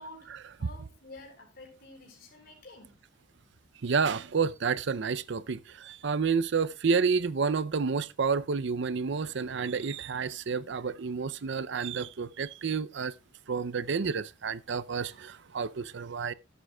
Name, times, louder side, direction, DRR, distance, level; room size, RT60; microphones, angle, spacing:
voice 1, 0.0-3.0, left 2 dB, 50° left, 3.9 m, -49 dB
voice 2, 3.8-13.1 13.5-16.3, right 5 dB, 65° right, 0.5 m, -30 dB
16.0 x 8.2 x 2.3 m
head